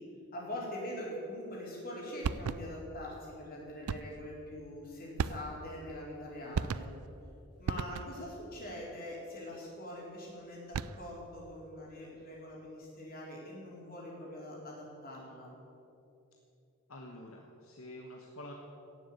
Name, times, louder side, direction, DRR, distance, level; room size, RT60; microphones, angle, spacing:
voice 1, 0.3-6.9 7.6-15.5, left 1 dB, 40° left, -4 dB, 4.1 m, -43 dB
sound 1, 2.2-2.9 3.9-4.3 5.2-5.8 6.5-7.1 7.7-8.3 10.5-11.2, right 6 dB, 80° right, 0.4 m, -36 dB
voice 2, 16.9-18.5, left 1 dB, 70° left, 0 dB, 1.4 m, -48 dB
17.0 x 7.2 x 8.5 m, 2.8 s
head